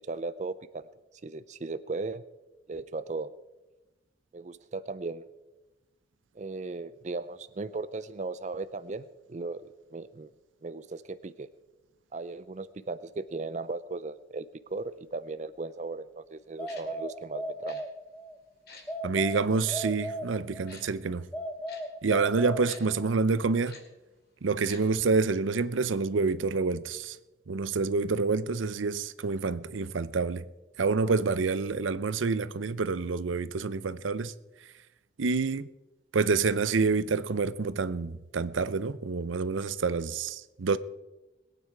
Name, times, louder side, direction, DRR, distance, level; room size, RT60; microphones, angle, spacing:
voice 1, 0.1-0.8 1.2-2.2 2.7-3.3 4.3-5.2 6.3-10.3 10.6-11.5 12.1-17.8, right 3 dB, 40° right, 0.4 m, -37 dB
sound 1, 16.6-18.4 18.9-20.8 21.3-23.2, equal, 5° left, 0.6 m, -37 dB
Tick-tock, 16.7-16.8 17.7-17.8 18.7-18.8 19.7-19.8 20.7-20.8 21.7-21.8 22.7-22.8 23.7-23.8 24.7-24.8 25.1-25.2, left 4 dB, 55° left, 2.4 m, -48 dB
voice 2, 19.0-21.3 22.0-23.8 24.4-27.2 27.5-30.4 30.8-34.3 35.2-35.7 36.1-40.8, right 4 dB, 90° right, 0.6 m, -27 dB
21.0 x 9.3 x 4.6 m
head